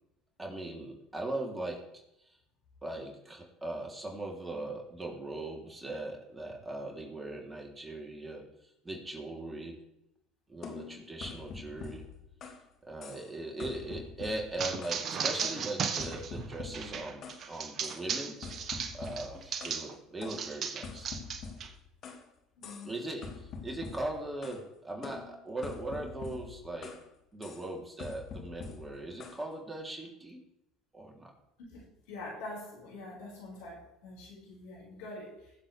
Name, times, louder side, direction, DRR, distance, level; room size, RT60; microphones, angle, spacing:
voice 1, 0.4-2.4 2.8-8.5 8.8-9.8 10.5-12.1 12.8-18.4 18.9-21.1 21.6-21.7 22.8-27.0 27.3-30.4 30.9-31.3, right 2 dB, 15° right, 0 dB, 3.2 m, -39 dB
sound 1, 10.6-12.7 13.0-13.3 13.6-15.1 15.4-17.4 17.8-18.0 18.4-19.8 20.2-22.3 22.6-22.9 23.2-24.6 25.0-27.1 27.4-27.7 28.0-29.4, left 5 dB, 50° left, 2.1 m, -45 dB
sound 2, 14.6-20.0 20.3-21.7, right 6 dB, 45° right, 1.4 m, -36 dB
voice 2, 22.6-22.9 31.7-35.6, left 2 dB, 75° left, -3 dB, 5.3 m, -45 dB
21.5 x 7.6 x 3.4 m, 0.81 s
hypercardioid pair, 70°, 0 cm